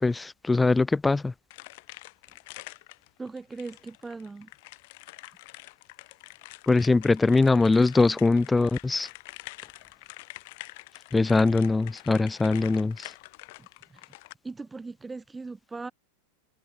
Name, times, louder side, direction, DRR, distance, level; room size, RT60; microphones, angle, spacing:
voice 1, 0.0-1.3 6.7-9.1 11.1-13.1, left 3 dB, 10° left, 0.5 m, -22 dB
sound 1, 1.5-14.3, left 23 dB, 50° left, 5.2 m, -46 dB
voice 2, 3.2-4.5 13.6-14.1 14.4-15.9, right 3 dB, 10° right, 2.3 m, -39 dB
figure-of-eight pair, 90°, 0 cm